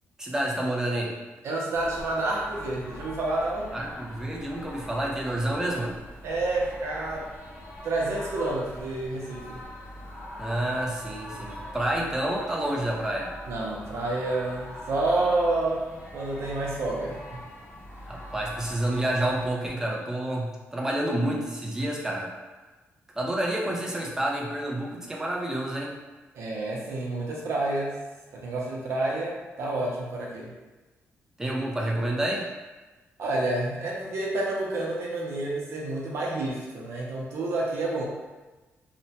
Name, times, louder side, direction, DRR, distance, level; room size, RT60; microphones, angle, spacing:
voice 1, 0.2-1.1 3.7-6.0 10.4-13.3 18.1-22.3 23.2-25.9 31.4-32.5, right 1 dB, 10° right, -2 dB, 0.4 m, -29 dB
voice 2, 1.4-3.7 6.2-7.3 7.8-9.7 13.5-17.4 26.3-28.0 28.3-30.5 33.2-38.0, right 2 dB, 70° right, -3 dB, 0.6 m, -29 dB
sound 1, 1.7-19.5, left 1 dB, 75° left, 0.8 m, -43 dB
2.8 x 2.1 x 2.7 m, 1.2 s
wide cardioid pair, 145°, 5 cm